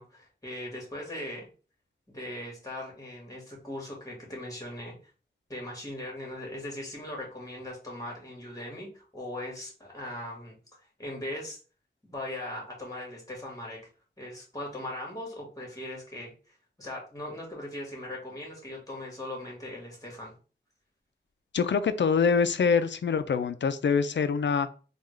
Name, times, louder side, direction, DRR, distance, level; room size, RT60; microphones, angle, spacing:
voice 1, 0.0-1.5 2.1-5.0 5.5-10.6 11.0-11.6 12.0-13.8 14.2-20.3, left 1 dB, 15° left, -2 dB, 1.7 m, -39 dB
voice 2, 21.5-24.7, left 5 dB, 65° left, 12 dB, 0.4 m, -25 dB
3.5 x 2.3 x 3.2 m, 0.36 s
cardioid pair, 45°, 20 cm